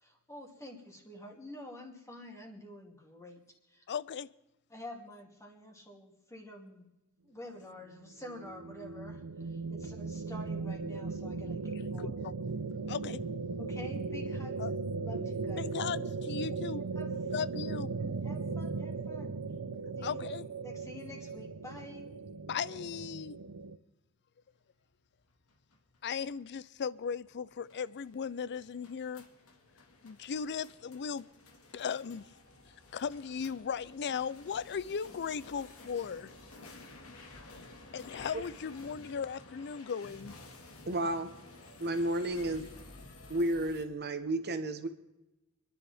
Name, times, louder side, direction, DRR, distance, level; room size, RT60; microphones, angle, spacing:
voice 1, 0.0-3.4 3.7-3.8 4.7-6.9 7.2-12.1 13.6-14.6 14.9-15.7 17.0-17.1 18.0-19.4 20.0-20.3 20.6-22.1, left 1 dB, 15° left, 2.5 m, -48 dB
voice 2, 3.9-4.3 12.0-12.3 12.9-13.2 14.6-14.7 15.6-16.8 17.3-17.9 20.0-20.4 22.5-23.4 26.0-29.2 30.0-31.2 31.7-32.3 32.9-36.3 37.9-40.3, left 6 dB, 50° left, 0.4 m, -37 dB
sound 1, 7.9-23.8, right 4 dB, 80° right, 0.7 m, -37 dB
sound 2, 25.2-43.8, left 2 dB, 70° left, 2.0 m, -53 dB
voice 3, 40.9-41.3 41.8-42.7 43.3-44.9, right 1 dB, 50° right, 1.2 m, -32 dB
27.5 x 11.0 x 3.5 m
head